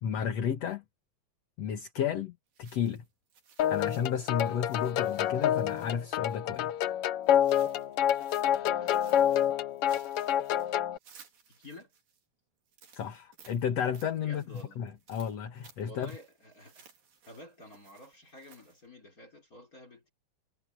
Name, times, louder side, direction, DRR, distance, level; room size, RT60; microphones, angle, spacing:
voice 1, 0.0-0.8 1.6-3.0 3.7-6.7 12.9-14.4 14.8-16.1, left 8 dB, 55° left, 2.3 m, -32 dB
sound 1, 2.5-6.7 7.2-8.6 8.9-12.2 12.7-18.9, right 6 dB, 75° right, 5.5 m, -59 dB
sound 2, 3.6-11.0, left 11 dB, 80° left, 1.3 m, -28 dB
voice 2, 8.5-9.5 11.5-11.9 14.2-14.8 15.8-16.9 17.3-20.1, left 1 dB, 25° left, 4.7 m, -51 dB
omnidirectional pair, 3.9 m